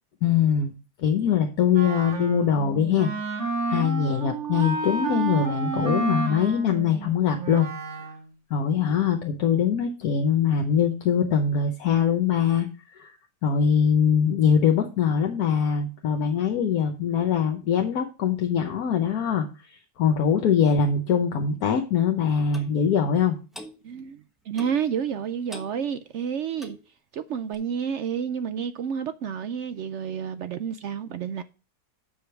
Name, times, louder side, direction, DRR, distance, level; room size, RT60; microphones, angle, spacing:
voice 1, 0.2-0.7 1.0-3.4 3.7-7.7 8.5-12.7 13.0-13.1 13.4-19.5 20.0-23.4, left 7 dB, 70° left, 1.3 m, -22 dB
Wind instrument woodwind instrument, 1.7-8.3, right 4 dB, 45° right, 2.0 m, -30 dB
Clock, 22.5-22.7 23.5-23.7 24.5-24.8 25.5-25.8 26.5-26.8 27.5-27.6, equal, ahead, 0.7 m, -42 dB
voice 2, 23.8-26.8 27.1-31.4, right 7 dB, 70° right, 0.7 m, -30 dB
7.7 x 5.0 x 5.7 m
omnidirectional pair, 1.7 m